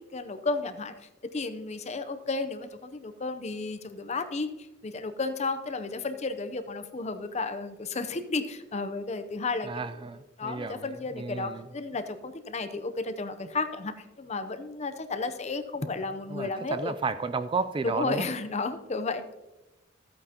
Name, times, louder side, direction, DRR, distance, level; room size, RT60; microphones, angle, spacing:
voice 1, 0.1-0.9 1.3-9.9 10.4-16.9 17.8-19.4, left 3 dB, 35° left, 9 dB, 0.6 m, -33 dB
voice 2, 9.6-11.7 16.3-18.3, right 4 dB, 25° right, 12 dB, 0.3 m, -33 dB
13.5 x 8.6 x 2.9 m, 1.0 s
head